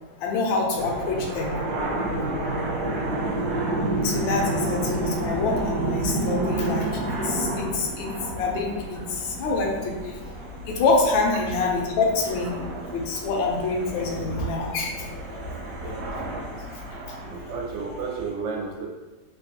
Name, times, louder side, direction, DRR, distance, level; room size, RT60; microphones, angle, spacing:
voice 1, 0.2-1.5 4.0-9.9 10.7-12.5 12.9-15.1 15.8-16.0, left 3 dB, 85° left, 0 dB, 1.3 m, -26 dB
sound 1, 0.7-18.3, right 1 dB, 65° right, 1.1 m, -30 dB
voice 2, 16.9-18.9, right 5 dB, 85° right, 0 dB, 1.3 m, -33 dB
3.4 x 2.2 x 2.8 m, 1.2 s
omnidirectional pair, 2.0 m